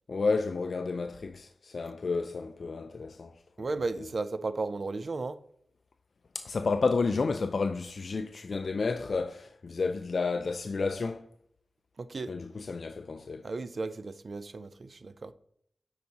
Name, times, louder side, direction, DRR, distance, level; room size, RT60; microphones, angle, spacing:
voice 1, 0.1-3.3 4.0-4.1 6.3-11.3 12.3-13.4, left 4 dB, 70° left, 0.3 m, -31 dB
voice 2, 3.6-5.4 12.0-12.3 13.4-15.3, right 3 dB, 60° right, 0.5 m, -34 dB
9.3 x 4.7 x 2.9 m
cardioid pair, 50°, 0 cm